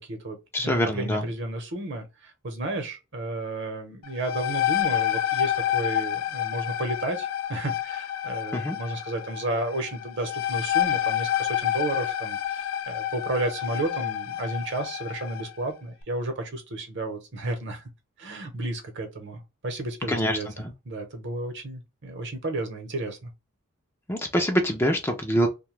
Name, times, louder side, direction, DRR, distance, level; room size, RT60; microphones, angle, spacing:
voice 1, 0.0-17.8 18.2-23.3, right 2 dB, 55° right, 0.9 m, -32 dB
voice 2, 0.5-1.2 8.5-8.8 20.1-20.4 24.1-25.5, equal, 10° left, 0.4 m, -24 dB
sound 1, 4.0-15.5, left 12 dB, 75° left, 0.4 m, -29 dB
2.8 x 2.2 x 3.1 m
head